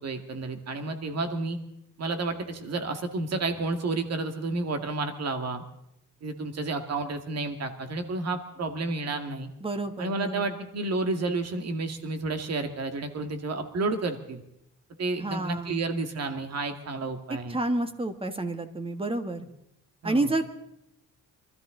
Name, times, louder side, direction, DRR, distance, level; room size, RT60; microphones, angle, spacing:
voice 1, 0.0-1.6 2.0-5.6 6.2-9.5 10.0-14.4 15.0-17.6 20.0-20.3, right 3 dB, 55° right, 7 dB, 2.1 m, -31 dB
voice 2, 9.6-10.5 15.2-15.8 17.5-19.4 20.0-20.4, right 2 dB, 20° right, 8 dB, 1.6 m, -29 dB
25.0 x 13.5 x 3.9 m, 0.79 s
cardioid pair, 90°, 30 cm